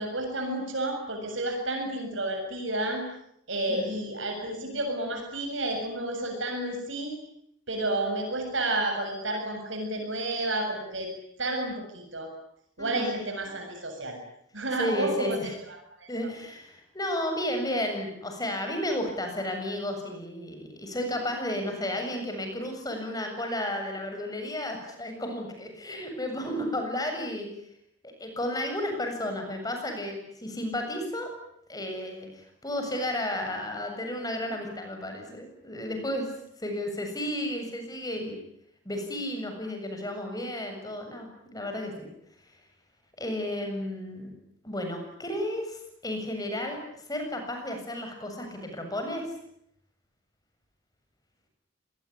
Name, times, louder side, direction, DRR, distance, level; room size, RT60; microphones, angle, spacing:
voice 1, 0.0-3.1 3.5-7.2 7.7-11.1 11.4-12.3 12.8-14.2 14.5-15.5 16.0-16.3, right 1 dB, 65° right, 3 dB, 7.3 m, -31 dB
voice 2, 12.8-13.2 14.8-15.5 16.1-27.5 28.0-31.3 31.7-36.3 36.6-38.4 38.8-41.9 43.2-44.3 44.6-46.8 47.1-49.3, left 1 dB, 20° left, 4 dB, 7.4 m, -33 dB
26.0 x 20.5 x 9.9 m, 0.73 s
head